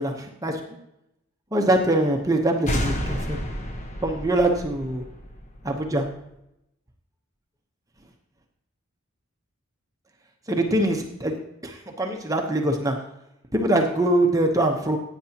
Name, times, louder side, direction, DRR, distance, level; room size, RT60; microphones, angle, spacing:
voice 1, 1.5-3.4 4.0-5.0 5.6-6.0 10.5-13.0 13.5-15.0, right 1 dB, 15° right, 3 dB, 0.9 m, -23 dB
sound 1, 2.7-6.1, equal, 30° left, 1.1 m, -31 dB
15.5 x 8.9 x 2.9 m, 0.82 s
head